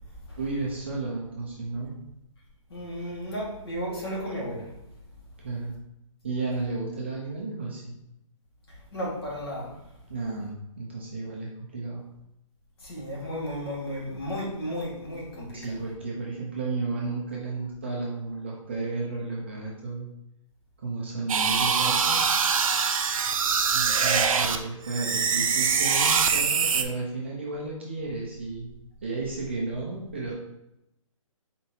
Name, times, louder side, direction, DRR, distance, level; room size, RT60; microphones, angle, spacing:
voice 1, 0.4-1.9 5.4-5.8 6.2-7.9 10.1-12.0 15.5-20.1 20.8-22.2 23.7-28.7 29.0-30.3, right 3 dB, 20° right, -4 dB, 0.4 m, -33 dB
voice 2, 2.7-4.7 8.9-9.8 12.8-15.7, equal, 45° left, -3 dB, 1.5 m, -34 dB
sound 1, 21.3-24.6 24.9-26.8, right 6 dB, 85° right, 0.5 m, -23 dB
4.3 x 3.9 x 2.7 m, 0.84 s
hypercardioid pair, 175°, 17 cm